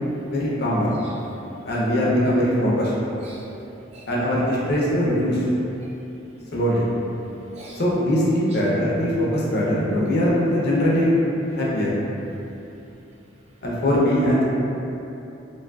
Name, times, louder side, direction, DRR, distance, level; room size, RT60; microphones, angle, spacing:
voice 1, 0.3-0.9 1.6-2.9 4.1-5.4 6.5-6.9 7.7-11.2 11.5-11.9 13.6-14.4, equal, 55° left, -6 dB, 0.5 m, -21 dB
voice 2, 1.0-1.7 3.2-3.7 3.9-4.1 5.8-5.9 6.4-6.6 7.3-7.8, right 1 dB, 35° right, -4 dB, 0.3 m, -45 dB
2.5 x 2.4 x 2.3 m, 2.8 s
head